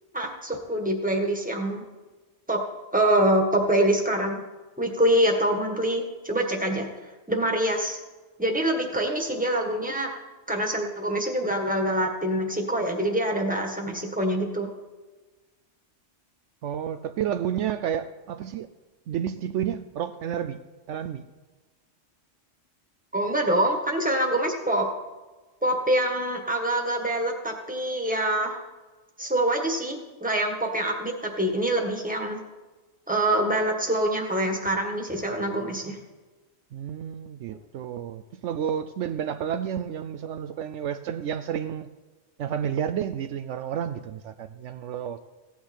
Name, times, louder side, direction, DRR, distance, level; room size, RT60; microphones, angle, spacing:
voice 1, 0.1-1.8 2.5-2.6 2.9-4.4 4.8-6.9 7.3-8.0 8.4-10.1 10.5-14.7 23.1-24.9 25.6-28.6 29.2-32.4 33.1-36.0, right 1 dB, 5° right, 1.6 m, -25 dB
voice 2, 16.6-18.7 19.1-20.6 20.9-21.3 36.7-41.9 42.4-45.2, right 9 dB, 75° right, 0.9 m, -30 dB
16.0 x 9.2 x 4.4 m
omnidirectional pair, 1.3 m